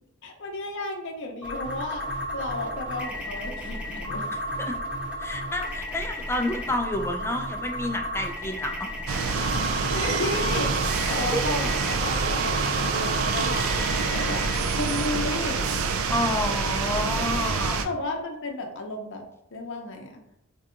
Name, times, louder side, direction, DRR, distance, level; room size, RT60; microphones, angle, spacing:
voice 1, 0.2-2.0 2.3-4.3 9.9-15.7 17.8-19.2 19.5-20.2, left 2 dB, 60° left, 2 dB, 0.6 m, -33 dB
sound 1, 1.4-14.6, equal, 5° right, 0.8 m, -33 dB
voice 2, 4.3-4.8 5.2-8.9 11.3-11.7 16.1-17.8, left 1 dB, 10° left, 5 dB, 0.3 m, -29 dB
sound 2, 9.1-17.9, right 5 dB, 75° right, 0.4 m, -26 dB
4.5 x 2.7 x 2.5 m, 0.80 s
head